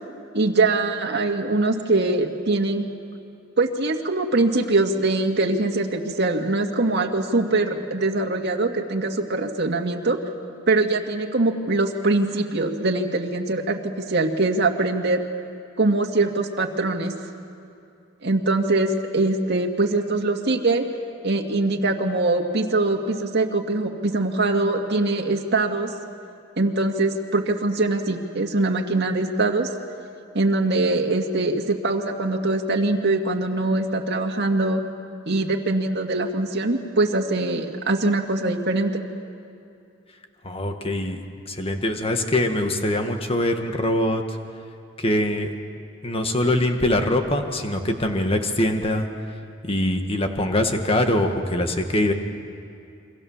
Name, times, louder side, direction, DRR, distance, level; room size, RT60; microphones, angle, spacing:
voice 1, 0.3-2.9 3.6-10.2 10.7-15.2 15.8-17.1 18.2-20.8 21.2-25.9 26.6-29.7 30.3-34.8 35.3-39.0, right 2 dB, 60° right, 2 dB, 2.1 m, -22 dB
voice 2, 40.4-41.2 41.5-44.4 45.0-45.5 46.0-49.1 49.6-52.1, left 1 dB, 30° left, 5 dB, 1.8 m, -23 dB
28.0 x 24.5 x 7.4 m, 2.6 s
head